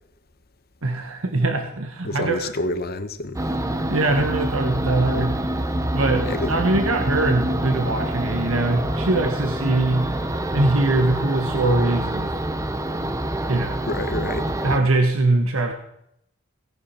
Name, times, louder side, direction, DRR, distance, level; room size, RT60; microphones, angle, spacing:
voice 1, 0.8-2.5 3.9-5.4 5.9-10.2 10.5-12.3 13.5-13.8 14.6-15.7, right 2 dB, 80° right, 5 dB, 1.3 m, -22 dB
voice 2, 2.0-3.4 6.2-6.5 13.8-14.5, left 2 dB, 50° left, 10 dB, 1.2 m, -28 dB
sound 1, 3.3-14.8, right 1 dB, 15° right, 0.7 m, -26 dB
17.5 x 11.0 x 4.3 m, 0.77 s
head